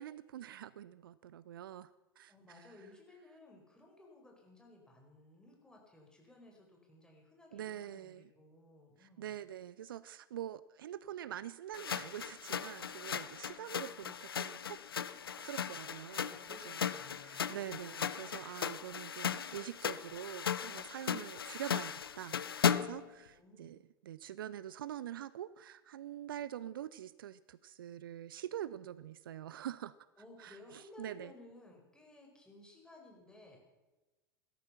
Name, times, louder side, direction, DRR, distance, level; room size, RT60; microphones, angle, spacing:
voice 1, 0.0-2.7 7.5-8.3 9.0-14.8 15.4-30.0 30.4-31.3, right 11 dB, 65° right, 18 dB, 0.5 m, -45 dB
voice 2, 2.3-9.3 16.1-17.9 23.3-23.7 30.2-33.6, left 2 dB, 5° left, 0 dB, 5.0 m, -58 dB
sound 1, 11.7-23.1, left 7 dB, 75° left, 0.6 m, -37 dB
17.5 x 13.0 x 5.8 m, 1.1 s
figure-of-eight pair, 85°, 12 cm